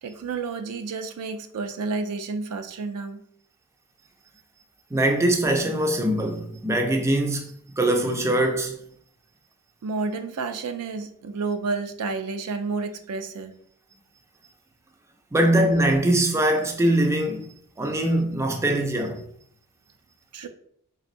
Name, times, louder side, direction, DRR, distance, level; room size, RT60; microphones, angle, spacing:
voice 1, 0.0-3.2 9.8-13.6 20.3-20.5, right 4 dB, 80° right, 0.4 m, -30 dB
voice 2, 4.9-8.8 15.3-19.2, right 1 dB, 10° right, 0.4 m, -22 dB
4.1 x 3.3 x 2.5 m
head